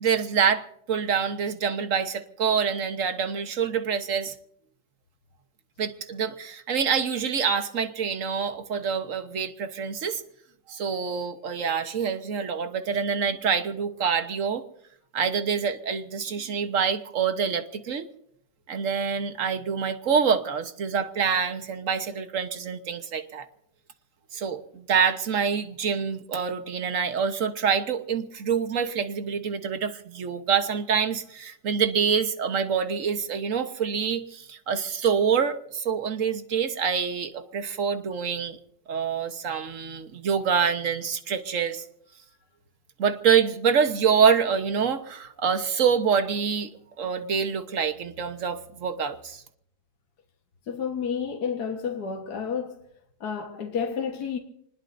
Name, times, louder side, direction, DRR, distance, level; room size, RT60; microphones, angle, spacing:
voice 1, 0.0-4.3 5.8-10.2 10.7-14.6 15.1-18.1 18.7-23.5 24.3-38.6 38.9-41.8 43.0-46.7 47.0-49.4, right 6 dB, 50° right, 1.4 m, -26 dB
voice 2, 50.7-52.8 53.2-54.4, left 6 dB, 60° left, 1.9 m, -30 dB
26.0 x 20.5 x 2.7 m
omnidirectional pair, 1.9 m